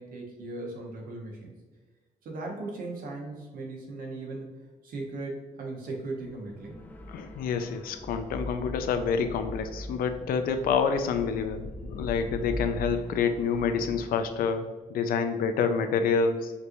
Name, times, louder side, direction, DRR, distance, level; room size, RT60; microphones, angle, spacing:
voice 1, 0.0-1.5 2.2-6.8, right 2 dB, 80° right, 0 dB, 1.0 m, -38 dB
sound 1, 6.2-14.5, left 1 dB, 10° left, 0.5 m, -41 dB
voice 2, 7.1-16.5, left 6 dB, 85° left, 8 dB, 0.4 m, -28 dB
5.1 x 3.0 x 2.6 m, 1.3 s
cardioid pair, 90°, 15 cm